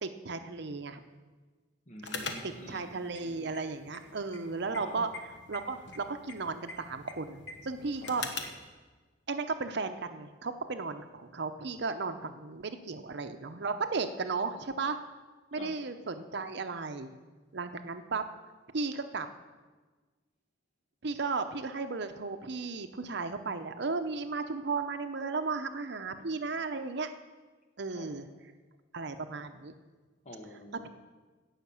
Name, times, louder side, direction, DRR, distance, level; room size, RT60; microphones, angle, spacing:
voice 1, 0.0-1.0 2.4-5.1 5.5-8.2 9.3-15.0 15.5-17.1 17.5-18.2 18.7-19.3 21.0-27.1 27.8-28.3 28.9-29.7, right 4 dB, 65° right, 8 dB, 0.7 m, -35 dB
voice 2, 1.9-2.9 4.8-5.1 8.0-8.2 15.6-15.8 27.9-28.1 30.2-30.9, left 1 dB, 40° left, 2 dB, 1.2 m, -47 dB
sound 1, 2.0-8.7, left 4 dB, 70° left, 1.2 m, -44 dB
16.5 x 5.8 x 7.0 m, 1.3 s
head